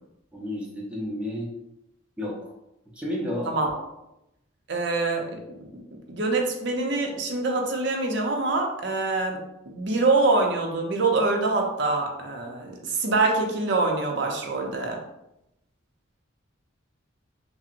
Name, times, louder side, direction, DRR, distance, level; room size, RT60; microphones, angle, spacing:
voice 1, 0.3-1.5 2.2-2.5 2.9-3.5, left 1 dB, 5° right, -4 dB, 0.6 m, -31 dB
voice 2, 3.5-3.8 4.7-5.3 6.1-9.4 9.7-15.0, right 3 dB, 60° right, 1 dB, 0.6 m, -25 dB
5.5 x 2.0 x 2.5 m, 0.87 s
head